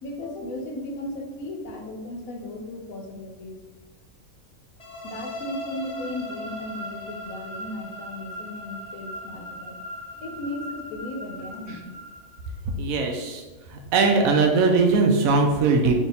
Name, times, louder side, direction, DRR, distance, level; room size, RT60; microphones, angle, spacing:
voice 1, 0.0-3.6 5.0-9.7 10.2-11.9, left 1 dB, 85° left, 2 dB, 1.1 m, -36 dB
sound 1, 4.8-12.6, left 1 dB, 45° left, 0.5 m, -38 dB
voice 2, 12.8-13.4 13.7-15.9, right 4 dB, 85° right, 3 dB, 1.0 m, -20 dB
3.4 x 2.8 x 4.0 m, 1.2 s
omnidirectional pair, 1.4 m